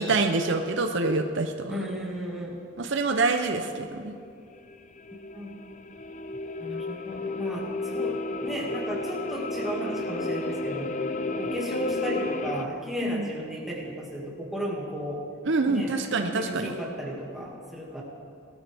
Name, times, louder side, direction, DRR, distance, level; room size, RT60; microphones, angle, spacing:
voice 1, 0.0-1.8 2.8-4.1 13.0-13.3 15.4-16.7, right 3 dB, 60° right, 6 dB, 0.6 m, -26 dB
voice 2, 1.7-2.6 5.3-5.6 6.6-10.9 11.3-15.2 15.7-15.9 16.4-18.0, equal, ahead, -4 dB, 2.1 m, -34 dB
sound 1, 4.6-12.6, left 2 dB, 35° left, 0.5 m, -32 dB
19.0 x 13.0 x 3.5 m, 2.5 s
head